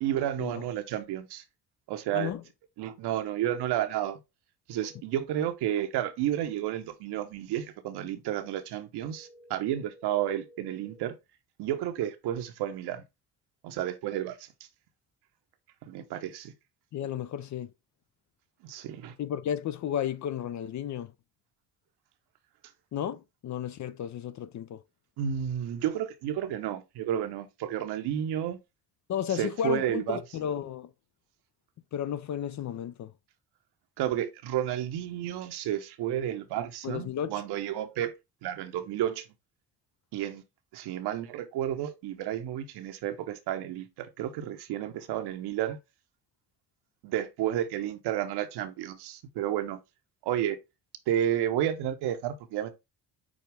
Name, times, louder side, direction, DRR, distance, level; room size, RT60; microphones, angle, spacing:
voice 1, 0.0-1.4 1.9-2.3 2.8-4.2 4.7-11.2 11.6-13.0 13.6-14.5 15.8-16.5 18.6-19.1 25.2-28.6 29.3-30.2 34.0-38.1 38.4-39.2 40.1-40.4 40.7-45.8 47.0-49.8 50.2-50.6 51.1-52.7, right 11 dB, 70° right, 0.9 m, -31 dB
sound 1, 4.7-5.0 9.0-11.0, equal, 85° left, 1.4 m, -54 dB
voice 2, 16.9-17.7 19.2-21.1 22.9-24.8 29.1-30.9 31.9-33.1 36.8-37.3, left 9 dB, 45° left, 0.5 m, -33 dB
6.2 x 2.3 x 3.3 m
hypercardioid pair, 60°, 42 cm